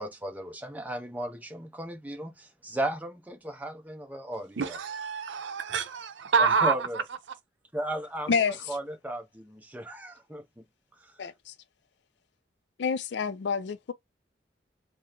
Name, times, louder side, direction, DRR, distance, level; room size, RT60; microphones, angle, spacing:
voice 1, 0.0-4.8 6.4-7.0 7.7-8.4 8.7-10.6 11.0-11.1, right 1 dB, 10° right, 0.5 m, -35 dB
voice 2, 4.6-6.7, right 5 dB, 80° right, 0.6 m, -26 dB
voice 3, 11.2-11.5 12.8-13.9, left 5 dB, 65° left, 0.4 m, -28 dB
3.0 x 2.0 x 3.5 m
head